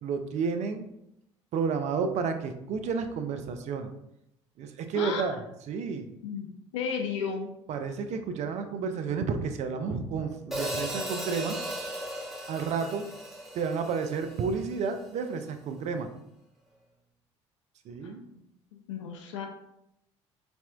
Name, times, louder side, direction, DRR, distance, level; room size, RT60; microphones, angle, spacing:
voice 1, 0.0-0.9 1.5-3.9 4.6-5.4 5.7-6.1 7.7-11.6 12.5-13.1 13.5-16.1 17.9-18.2, right 5 dB, 50° right, 7 dB, 0.4 m, -31 dB
voice 2, 4.9-5.4 6.2-6.5 6.7-7.5 18.0-18.1 18.7-19.5, left 6 dB, 80° left, 5 dB, 0.5 m, -33 dB
Hi-hat, 10.5-14.8, equal, ahead, 0.8 m, -36 dB
4.1 x 2.6 x 2.2 m, 0.80 s
hypercardioid pair, 60°, 15 cm